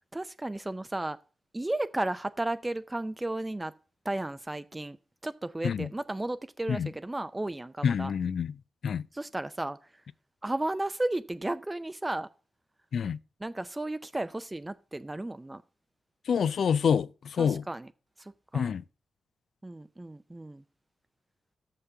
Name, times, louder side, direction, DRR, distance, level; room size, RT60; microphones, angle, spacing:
voice 1, 0.1-1.2 1.5-3.7 4.0-5.0 5.2-8.1 9.1-9.9 10.4-12.3 13.4-15.6 17.4-17.9 18.2-18.7 19.6-20.6, right 2 dB, 20° right, 0.4 m, -34 dB
voice 2, 7.8-8.5 8.8-9.0 12.9-13.2 16.3-17.6 18.5-18.8, left 7 dB, 70° left, 0.3 m, -27 dB
6.5 x 5.8 x 6.6 m
cardioid pair, 55°, 0 cm